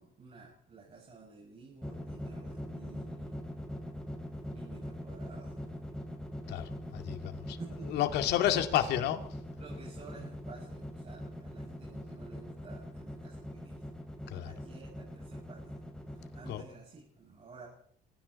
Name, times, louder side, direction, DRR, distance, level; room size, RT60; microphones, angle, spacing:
voice 1, 0.0-3.4 4.5-5.8 7.6-8.0 9.6-13.9 14.4-15.8 16.1-17.7, right 4 dB, 35° right, -2 dB, 6.8 m, -52 dB
sound 1, 1.8-16.6, equal, 5° left, 5.0 m, -41 dB
voice 2, 6.5-7.6 7.9-9.2 14.3-14.5 16.5-16.6, left 11 dB, 80° left, 8 dB, 2.2 m, -30 dB
26.5 x 23.5 x 4.2 m, 0.63 s
cardioid pair, 110°, 17 cm